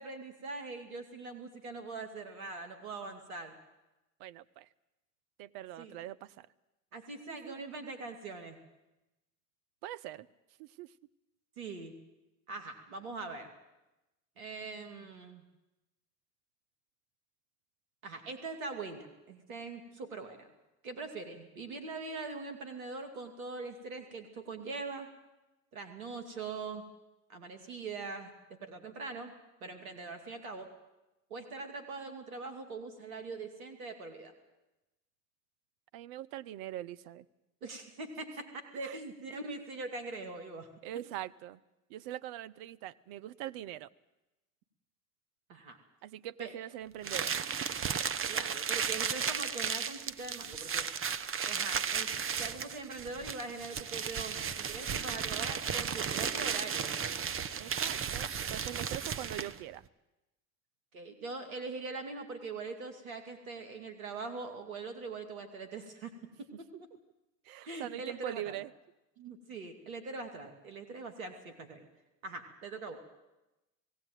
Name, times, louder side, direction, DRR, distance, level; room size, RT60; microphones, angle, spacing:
voice 1, 0.0-3.6 5.8-6.0 6.9-8.6 11.6-12.0 12.5-13.5 14.4-15.4 18.0-20.5 20.8-25.1 25.7-26.9 27.3-29.3 29.6-30.7 31.3-34.3 37.6-40.7 45.5-45.8 46.4-46.5 48.3-50.9 51.4-52.1 52.4-56.9 60.9-66.1 66.6-66.7 67.6-68.5 69.2-71.9 72.2-73.0, right 3 dB, 85° right, 7 dB, 2.5 m, -42 dB
voice 2, 4.2-4.7 5.4-6.5 7.3-7.6 9.8-10.3 10.6-10.9 35.9-37.3 38.8-39.0 40.8-41.6 41.9-43.9 46.0-47.4 57.6-59.8 66.5-66.6 67.4-68.7, right 13 dB, 60° right, 17 dB, 0.9 m, -42 dB
sound 1, 47.0-59.6, right 7 dB, 30° right, 1.0 m, -34 dB
18.0 x 17.0 x 9.2 m, 1.0 s
hypercardioid pair, 75°, 41 cm